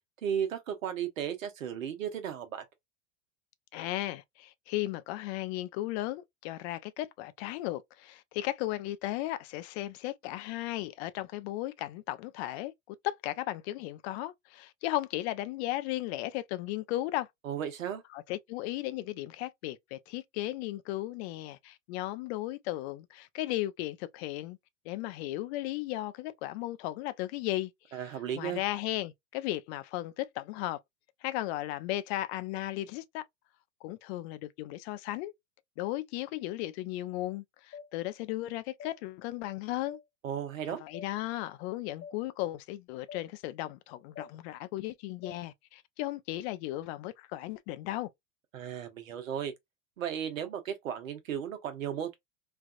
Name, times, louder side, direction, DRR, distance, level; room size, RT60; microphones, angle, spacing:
voice 1, 0.2-2.6 17.4-18.0 27.9-28.6 40.2-40.8 48.5-49.5 50.0-52.2, right 9 dB, 80° right, 1.0 m, -35 dB
voice 2, 3.7-17.3 18.1-24.6 24.9-28.0 28.3-30.8 31.2-33.2 33.8-35.3 35.8-40.0 40.7-48.1, left 16 dB, 55° left, 0.6 m, -35 dB
sound 1, 37.7-37.9 38.8-39.0 39.9-40.0 40.9-41.1 42.0-42.2 43.1-43.2 44.2-44.3 45.2-45.4, left 6 dB, 35° left, 0.9 m, -45 dB
3.3 x 2.4 x 2.3 m
hypercardioid pair, 90°, 39 cm